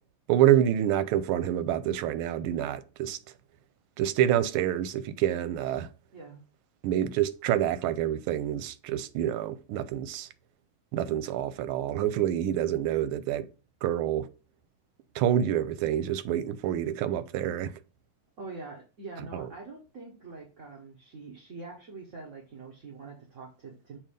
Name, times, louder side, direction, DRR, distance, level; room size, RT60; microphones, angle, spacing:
voice 1, 0.3-3.2 4.0-5.9 6.8-10.3 10.9-13.5 13.8-14.3 15.1-17.8 19.3-19.5, right 11 dB, 90° right, 1.5 m, -27 dB
voice 2, 6.1-6.4 18.4-24.0, right 3 dB, 40° right, 1.4 m, -44 dB
7.4 x 2.7 x 5.1 m
omnidirectional pair, 2.3 m